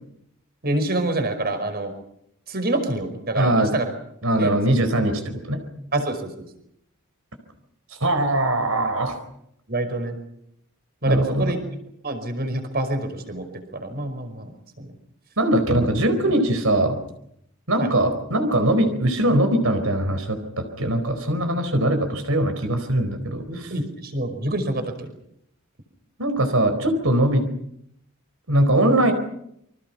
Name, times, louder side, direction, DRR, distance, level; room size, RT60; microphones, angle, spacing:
voice 1, 0.6-1.9 2.5-3.9 4.4-4.6 5.9-6.4 9.7-10.2 11.0-11.6 12.0-14.9 17.8-17.9 23.5-25.1, right 2 dB, 50° right, 8 dB, 5.2 m, -27 dB
voice 2, 3.3-3.7 4.2-5.6 8.0-9.2 11.0-11.6 15.4-17.0 17.7-23.4 26.2-27.5 28.5-29.1, right 1 dB, 70° right, 7 dB, 4.5 m, -21 dB
29.0 x 25.0 x 6.0 m, 0.75 s
head